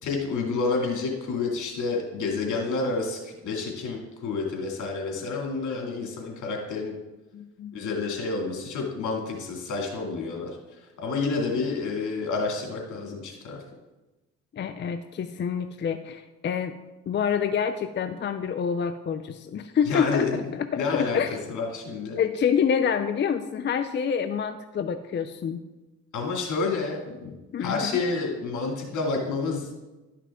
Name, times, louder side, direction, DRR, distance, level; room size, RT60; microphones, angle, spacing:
voice 1, 0.0-6.9 7.7-10.6 11.0-13.6 19.9-20.3 20.8-21.2 21.5-22.2 26.1-27.3 27.6-29.7, left 4 dB, 75° left, 0 dB, 2.5 m, -29 dB
voice 2, 7.3-7.7 14.5-16.8 17.1-20.3 20.5-21.4 22.2-25.6 27.5-27.9, left 7 dB, 40° left, 9 dB, 0.5 m, -27 dB
12.0 x 5.9 x 3.6 m, 1.1 s
cardioid pair, 90°, 30 cm